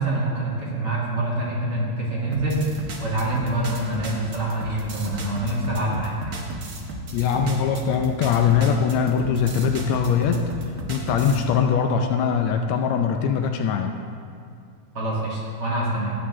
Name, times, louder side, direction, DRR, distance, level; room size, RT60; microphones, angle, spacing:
voice 1, 0.0-6.2 14.9-16.1, right 1 dB, 40° right, -6 dB, 2.3 m, -26 dB
sound 1, 2.3-11.4, right 2 dB, 70° right, 0.8 m, -34 dB
voice 2, 7.1-10.5 10.9-14.0, left 7 dB, 80° left, 5 dB, 1.8 m, -22 dB
15.5 x 8.2 x 3.7 m, 2.3 s
omnidirectional pair, 3.3 m